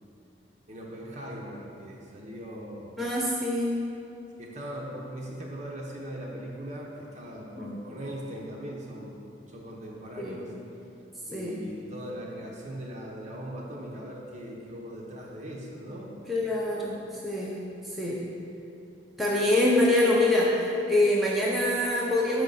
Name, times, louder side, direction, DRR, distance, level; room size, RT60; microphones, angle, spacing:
voice 1, 0.7-2.9 4.4-9.2 9.5-10.5 11.3-16.1, equal, 40° right, -2 dB, 0.8 m, -39 dB
voice 2, 3.0-3.8 7.6-7.8 10.2-10.4 11.3-11.6 16.3-18.2 19.2-20.5 20.9-22.4, left 1 dB, ahead, -5 dB, 0.5 m, -25 dB
5.7 x 5.0 x 4.0 m, 2.7 s
head